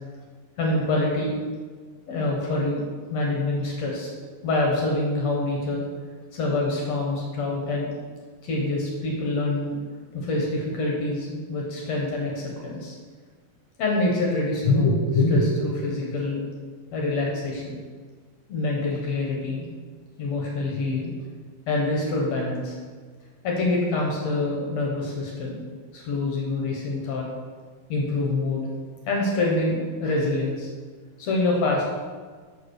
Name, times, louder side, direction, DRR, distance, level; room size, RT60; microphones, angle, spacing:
voice 1, 0.6-1.3 2.1-2.8 3.1-4.1 4.4-5.8 6.3-7.9 8.4-9.8 10.1-13.0 13.8-16.4 16.9-17.8 18.5-19.7 20.2-21.1 21.7-22.8 23.4-25.6 25.9-27.3 27.9-28.7 29.1-30.7 31.2-32.0, left 2 dB, 60° left, -2 dB, 2.1 m, -25 dB
7.1 x 6.0 x 6.5 m, 1.5 s
omnidirectional pair, 4.3 m